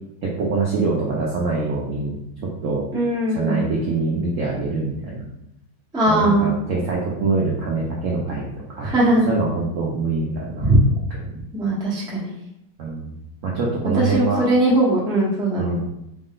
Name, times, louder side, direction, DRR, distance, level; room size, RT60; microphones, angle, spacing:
voice 1, 0.2-2.8 3.3-5.3 6.1-8.9 9.3-10.7 11.3-11.4 12.8-13.2 13.4-14.4 15.6-15.9, right 3 dB, 70° right, -3 dB, 0.7 m, -24 dB
voice 2, 2.9-3.6 5.9-6.5 8.8-9.2 10.6-10.8 11.5-12.3 14.0-15.8, right 1 dB, 5° right, -6 dB, 0.3 m, -20 dB
4.2 x 2.1 x 3.7 m, 0.84 s
omnidirectional pair, 2.2 m